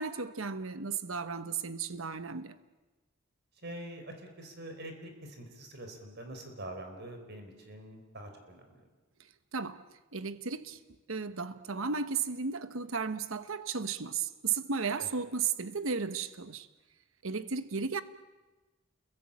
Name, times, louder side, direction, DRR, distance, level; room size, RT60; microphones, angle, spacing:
voice 1, 0.0-2.6 9.5-9.8 10.1-10.8 11.1-16.7 17.2-18.0, right 5 dB, 70° right, 1.1 m, -34 dB
voice 2, 3.6-8.8 15.0-15.1, right 1 dB, 55° right, 4.7 m, -45 dB
29.5 x 22.0 x 8.8 m
head